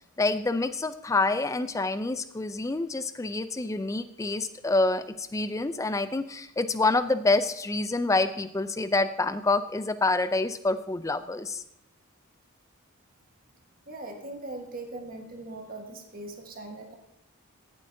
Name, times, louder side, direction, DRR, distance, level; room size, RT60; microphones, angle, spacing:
voice 1, 0.2-11.6, left 3 dB, 15° left, 12 dB, 0.3 m, -27 dB
voice 2, 13.9-17.0, right 2 dB, 40° right, 3 dB, 1.3 m, -40 dB
16.0 x 7.5 x 2.7 m, 0.80 s
head